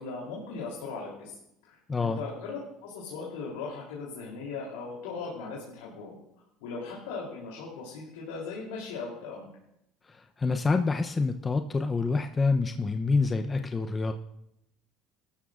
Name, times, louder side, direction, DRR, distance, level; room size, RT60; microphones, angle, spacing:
voice 1, 0.0-1.4 1.6-6.2 6.6-9.5, left 4 dB, 85° left, -4 dB, 3.2 m, -38 dB
voice 2, 1.9-2.2 10.4-14.1, left 4 dB, 25° left, 6 dB, 0.7 m, -27 dB
18.5 x 13.0 x 2.5 m, 0.81 s
supercardioid pair, 95°, 0 cm